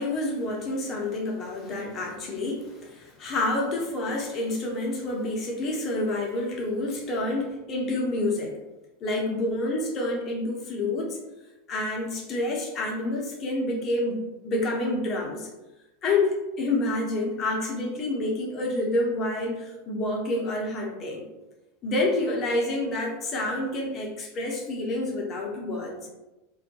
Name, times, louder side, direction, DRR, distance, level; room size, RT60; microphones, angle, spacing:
voice 1, 0.0-8.5 9.0-11.2 11.7-14.2 14.4-15.5 16.0-21.2 21.8-26.0, left 2 dB, 35° left, -1 dB, 0.7 m, -28 dB
2.2 x 2.1 x 2.8 m, 1.0 s
figure-of-eight pair, 85°, 0 cm